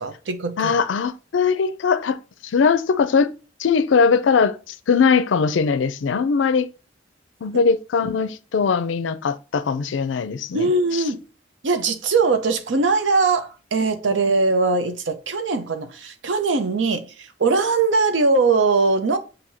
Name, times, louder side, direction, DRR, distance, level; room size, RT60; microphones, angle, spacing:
voice 1, 0.0-0.7 10.5-11.2 11.6-19.2, right 3 dB, 75° right, 0.6 m, -21 dB
voice 2, 0.6-3.3 3.6-4.6 4.9-6.7 7.4-11.0, left 5 dB, 85° left, 0.4 m, -20 dB
7.1 x 2.7 x 2.7 m
head